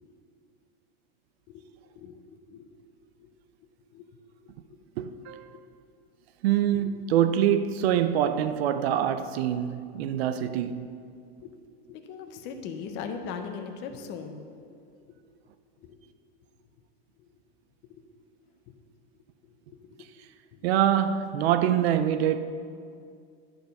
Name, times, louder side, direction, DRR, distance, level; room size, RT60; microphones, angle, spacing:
voice 1, 2.0-2.7 3.2-3.3 3.9-4.1 4.4-4.8 5.5-5.6 6.7-6.8 8.0-8.1 11.9-14.5 15.1-15.2 15.8-16.0 17.2-17.3 17.9-18.0 18.7-18.8 19.4-19.5 19.8-20.1 20.5-20.7, left 6 dB, 35° left, 0.6 m, -40 dB
voice 2, 5.0-5.6 6.4-10.9 20.6-22.4, right 10 dB, 75° right, 0.6 m, -25 dB
10.5 x 4.5 x 5.2 m
supercardioid pair, 155°, 31 cm